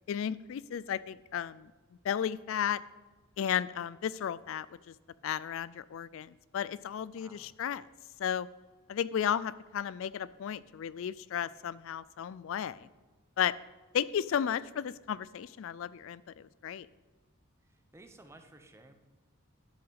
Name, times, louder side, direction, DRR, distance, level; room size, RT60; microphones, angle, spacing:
voice 1, 0.1-1.7 2.0-2.8 3.4-4.7 5.2-7.8 8.2-8.5 8.9-12.9 13.4-13.5 13.9-16.9, left 9 dB, 65° left, 18 dB, 0.3 m, -34 dB
voice 2, 7.1-7.5 17.7-18.9, right 2 dB, 15° right, 6 dB, 0.9 m, -55 dB
12.0 x 5.8 x 8.0 m, 1.3 s
head